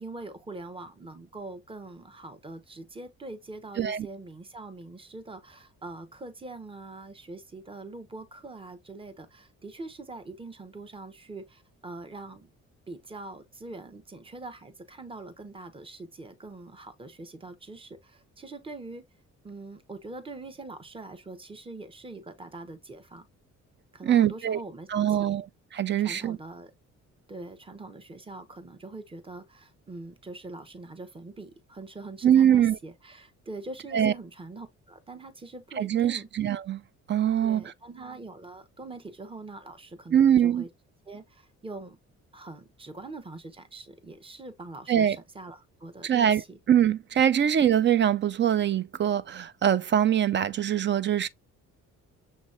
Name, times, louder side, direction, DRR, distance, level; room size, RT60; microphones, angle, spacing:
voice 1, 0.0-12.5 12.9-19.0 19.4-23.3 23.9-25.4 26.0-26.7 27.3-36.3 37.4-40.7 41.1-42.0 42.3-46.6, right 2 dB, 20° right, 0.9 m, -43 dB
voice 2, 24.0-24.6 24.9-25.4 25.7-26.4 32.2-32.8 33.9-34.1 35.8-36.8 37.1-37.6 40.1-40.6 44.9-45.2 46.0-46.4 46.7-51.3, right 9 dB, 40° right, 0.4 m, -23 dB
6.5 x 3.0 x 2.5 m
cardioid pair, 90°, 30 cm